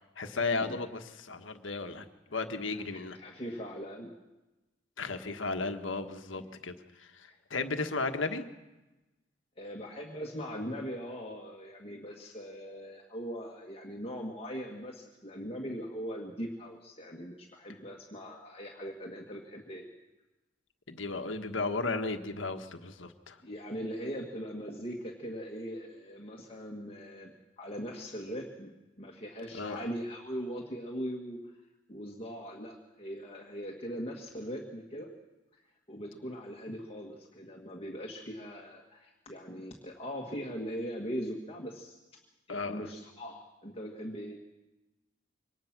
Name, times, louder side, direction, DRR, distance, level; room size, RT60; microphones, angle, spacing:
voice 1, 0.2-2.1 2.3-3.2 5.0-8.5 20.9-23.4 29.5-29.8 42.5-42.9, left 3 dB, 85° left, 7 dB, 1.5 m, -34 dB
voice 2, 2.7-4.1 6.4-6.5 7.2-7.4 9.6-19.8 23.4-31.6 31.9-35.1 35.5-35.6 35.9-42.2 42.5-44.4, equal, 30° left, -1 dB, 1.8 m, -40 dB
23.5 x 19.0 x 6.1 m, 1.1 s
head